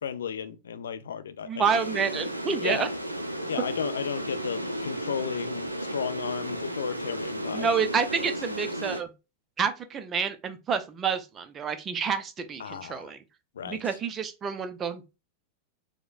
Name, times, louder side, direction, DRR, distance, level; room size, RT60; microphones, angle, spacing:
voice 1, 0.0-1.6 2.6-2.9 3.5-7.7 12.6-13.1 13.6-13.9, left 8 dB, 65° left, 0.4 m, -34 dB
voice 2, 1.5-2.9 7.5-9.1 9.6-13.2 13.6-15.2, right 6 dB, 25° right, 0.5 m, -29 dB
sound 1, 1.6-9.0, right 1 dB, 85° right, 0.4 m, -33 dB
4.7 x 2.1 x 2.4 m
figure-of-eight pair, 90°, 0 cm